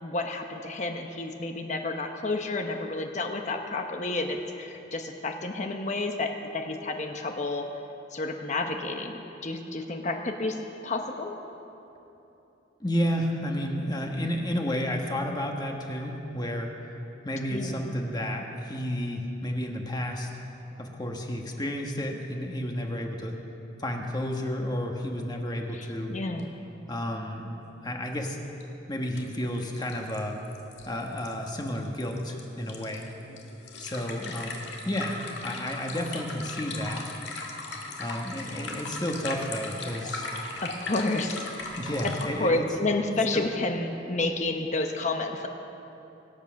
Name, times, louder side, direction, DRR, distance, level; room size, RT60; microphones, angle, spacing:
voice 1, 0.0-7.7 8.1-10.6 10.8-11.4 17.5-17.9 25.7-26.5 38.5-38.6 40.6-41.5 42.0-42.1 42.4-45.5, left 2 dB, 40° left, 4 dB, 0.9 m, -30 dB
voice 2, 12.8-16.7 17.2-20.3 20.8-23.4 23.8-26.1 26.9-27.5 27.8-28.4 28.9-30.4 30.9-33.1 33.8-37.1 38.0-40.3 41.8-42.6 43.3-43.5, equal, 20° left, 1 dB, 1.3 m, -31 dB
sound 1, 26.4-26.5 26.7-26.8 28.6-28.7 29.2-29.3 29.5-42.2, left 3 dB, 65° left, 1.9 m, -38 dB
24.0 x 8.3 x 6.4 m, 3.0 s
head